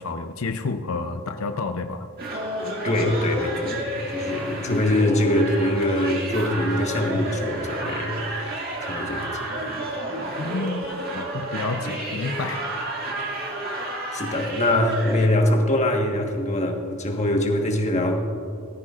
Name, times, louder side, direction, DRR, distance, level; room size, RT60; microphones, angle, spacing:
voice 1, 0.0-2.1 4.7-4.9 10.4-12.6, left 3 dB, 80° left, 6 dB, 0.6 m, -30 dB
sound 1, 2.2-15.3, right 1 dB, 45° right, 2.3 m, -30 dB
voice 2, 2.8-9.7 14.1-18.3, left 1 dB, 35° left, 2 dB, 1.4 m, -23 dB
18.5 x 14.0 x 2.5 m, 2.7 s
head